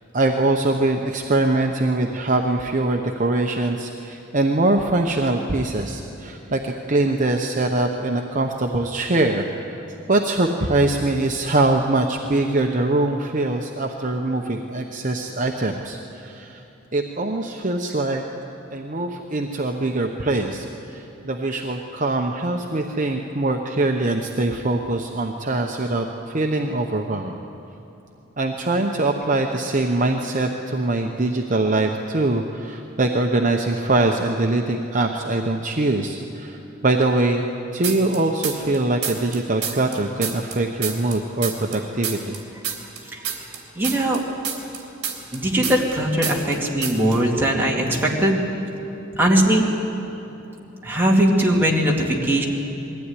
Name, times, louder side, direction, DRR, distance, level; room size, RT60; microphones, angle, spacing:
voice 1, 0.1-9.5 9.7-9.8 10.1-16.6 16.9-18.2 18.7-27.4 28.4-42.4, right 2 dB, 40° right, 2 dB, 0.9 m, -23 dB
sound 1, 37.8-38.8 39.0-41.8 42.0-46.0 46.2-46.6 46.8-47.2, right 7 dB, 55° right, 3.0 m, -28 dB
voice 2, 43.8-44.2 45.3-48.4 49.1-49.6 50.8-52.4, right 1 dB, 10° right, -3 dB, 2.6 m, -20 dB
21.5 x 15.5 x 9.9 m, 2.9 s
head